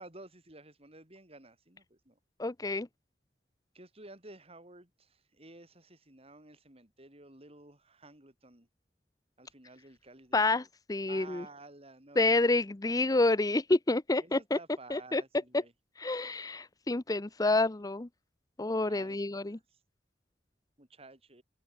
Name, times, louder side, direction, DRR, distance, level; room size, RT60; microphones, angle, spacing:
voice 1, 0.0-2.1 3.7-8.7 9.4-10.7 11.1-12.6 12.9-13.2 14.2-15.7 18.8-19.2 19.5-19.6 20.8-21.4, right 2 dB, 35° right, 5.4 m, -53 dB
voice 2, 2.4-2.9 10.3-11.5 12.2-14.6 14.9-15.2 15.5-15.6 16.0-18.1 18.6-19.6, left 2 dB, 20° left, 0.6 m, -28 dB
open air
head